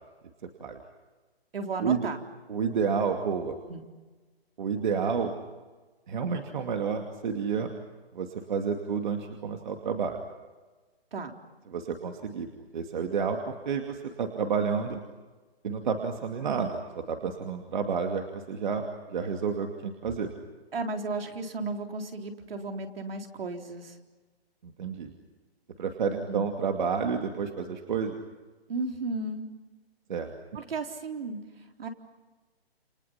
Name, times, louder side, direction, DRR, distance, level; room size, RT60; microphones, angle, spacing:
voice 1, 1.5-2.2 3.7-3.8 11.1-11.3 20.7-24.0 26.3-26.5 28.7-29.5 30.5-31.9, right 3 dB, 65° right, 4 dB, 4.0 m, -34 dB
voice 2, 2.5-3.6 4.6-5.3 6.1-7.7 8.1-10.2 11.7-12.5 12.7-15.0 15.6-20.3 24.6-25.1 25.8-28.2 30.1-30.3, right 6 dB, 50° right, 4 dB, 2.5 m, -30 dB
29.5 x 28.5 x 5.8 m, 1.3 s
hypercardioid pair, 165°, 31 cm